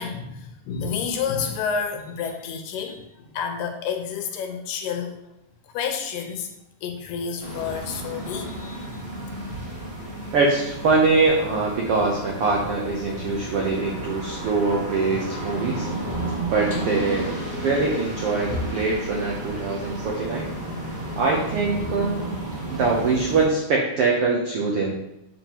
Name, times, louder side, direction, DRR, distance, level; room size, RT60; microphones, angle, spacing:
voice 1, 0.0-5.1 5.7-6.5 6.8-8.9, left 6 dB, 85° left, 4 dB, 2.5 m, -29 dB
sound 1, 7.4-23.5, right 1 dB, 15° right, 2.7 m, -32 dB
voice 2, 10.3-15.9 16.5-20.5 21.2-22.2 22.7-24.9, right 3 dB, 80° right, -1 dB, 1.3 m, -23 dB
7.6 x 7.2 x 2.9 m, 0.86 s
omnidirectional pair, 3.8 m